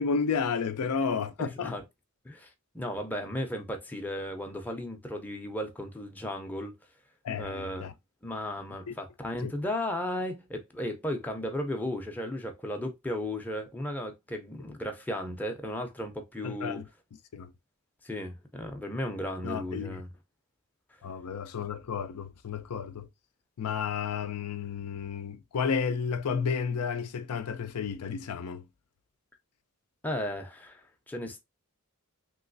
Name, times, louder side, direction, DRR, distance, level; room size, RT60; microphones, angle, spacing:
voice 1, 0.0-1.7 7.2-7.9 8.9-9.0 9.4-9.5 16.4-16.8 17.3-17.5 19.4-20.0 21.0-23.1 23.6-28.7, left 6 dB, 85° left, 0.4 m, -32 dB
voice 2, 1.4-1.8 2.2-2.5 2.7-6.8 7.3-7.9 8.2-16.8 18.0-20.1 30.0-31.4, left 1 dB, 10° left, 0.5 m, -35 dB
3.0 x 3.0 x 2.5 m
head